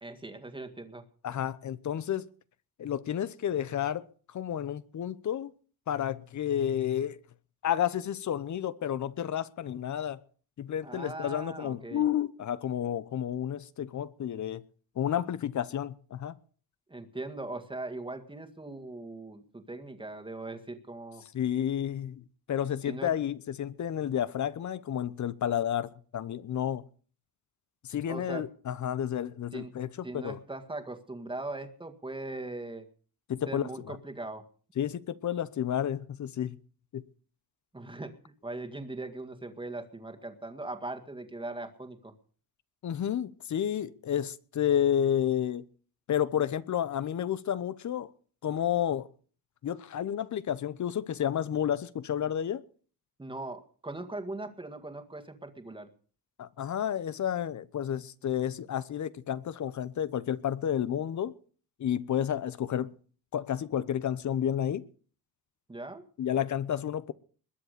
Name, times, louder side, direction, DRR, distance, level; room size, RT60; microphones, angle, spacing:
voice 1, 0.0-1.0 10.8-12.0 16.9-21.2 22.9-23.1 28.1-28.5 29.5-29.7 30.0-32.9 33.5-34.4 37.7-42.1 53.2-55.9 65.7-66.0, right 2 dB, 15° right, 1.9 m, -40 dB
voice 2, 1.2-2.3 2.8-5.5 5.9-7.2 7.6-10.2 10.6-14.6 15.0-16.3 21.3-22.2 22.5-26.8 27.8-30.4 33.3-34.0 34.8-36.6 36.9-37.0 42.8-45.7 46.1-48.1 48.4-49.1 49.6-52.6 56.4-61.4 61.8-62.9 63.3-64.8 66.2-67.1, left 10 dB, 50° left, 0.9 m, -31 dB
21.5 x 7.5 x 6.7 m
cardioid pair, 120°, 37 cm